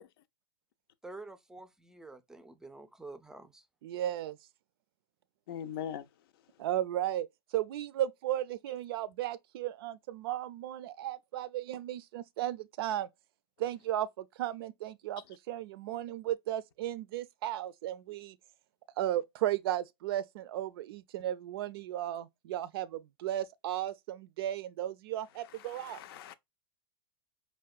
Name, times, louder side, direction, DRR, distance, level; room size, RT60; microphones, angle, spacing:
voice 1, 1.0-3.6, right 2 dB, 5° right, 0.4 m, -48 dB
voice 2, 3.8-4.4 6.6-13.1 13.6-18.4 19.0-26.0, right 12 dB, 70° right, 0.4 m, -35 dB
voice 3, 5.5-6.1 25.7-26.3, left 9 dB, 65° left, 0.5 m, -40 dB
4.6 x 2.2 x 2.3 m
hypercardioid pair, 115°, 13 cm